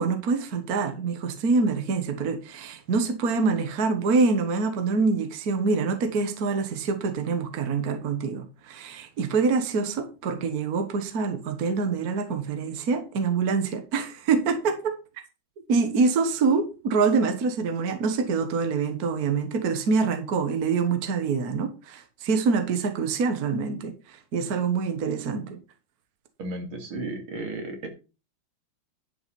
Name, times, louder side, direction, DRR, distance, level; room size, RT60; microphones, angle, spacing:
voice 1, 0.0-15.0 15.7-25.6, right 4 dB, 50° right, 1.6 m, -25 dB
voice 2, 26.4-27.9, right 2 dB, 80° right, 3.1 m, -34 dB
11.0 x 5.8 x 5.2 m
omnidirectional pair, 2.3 m